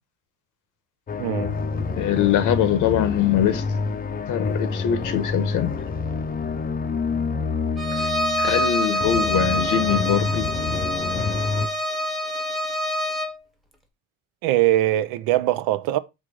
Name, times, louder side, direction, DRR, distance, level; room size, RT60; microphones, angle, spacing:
sound 1, 1.1-11.7, left 4 dB, 25° left, 0.6 m, -28 dB
voice 1, 1.2-1.5 14.4-16.0, right 14 dB, 80° right, 0.5 m, -21 dB
voice 2, 1.9-3.6 4.3-5.7 7.9-10.5, left 10 dB, 65° left, 0.9 m, -23 dB
Bowed string instrument, 7.8-13.4, equal, ahead, 0.8 m, -26 dB
4.5 x 2.5 x 4.6 m
cardioid pair, 95°, 34 cm